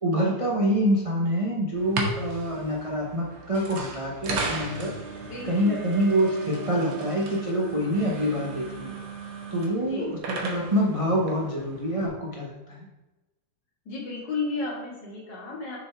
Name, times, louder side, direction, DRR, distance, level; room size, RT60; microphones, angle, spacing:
voice 1, 0.0-4.9 5.4-8.9 9.5-12.9, equal, 45° right, -3 dB, 0.4 m, -26 dB
sound 1, 1.7-12.1, right 3 dB, 90° right, 2.0 m, -36 dB
voice 2, 5.3-5.8 9.7-10.2 13.9-15.8, left 3 dB, 55° left, -2 dB, 2.3 m, -33 dB
6.7 x 5.3 x 4.5 m, 1.1 s
omnidirectional pair, 2.3 m